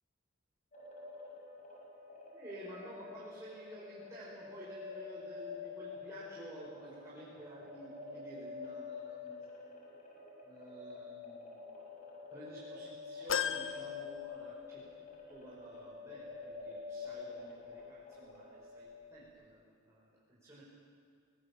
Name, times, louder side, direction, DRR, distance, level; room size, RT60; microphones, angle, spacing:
sound 1, 0.7-19.2, left 4 dB, 40° left, 5.8 m, -48 dB
voice 1, 2.3-9.5 10.4-11.5 12.3-14.8 15.3-20.6, right 1 dB, 15° right, -8 dB, 5.2 m, -52 dB
sound 2, 13.3-14.9 15.4-15.5 16.7-16.8, left 7 dB, 75° left, 0.9 m, -37 dB
27.5 x 20.0 x 7.2 m, 2.1 s
head